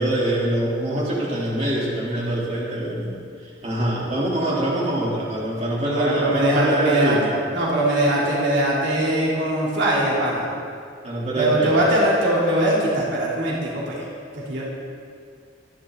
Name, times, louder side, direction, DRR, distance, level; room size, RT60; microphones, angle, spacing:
voice 1, 0.0-7.4 11.0-11.8, right 1 dB, 40° right, -6 dB, 4.2 m, -24 dB
voice 2, 5.8-7.2 7.5-10.5 11.3-14.1 14.3-14.7, right 1 dB, 65° right, -6 dB, 3.9 m, -21 dB
25.5 x 12.0 x 4.2 m, 2.2 s
head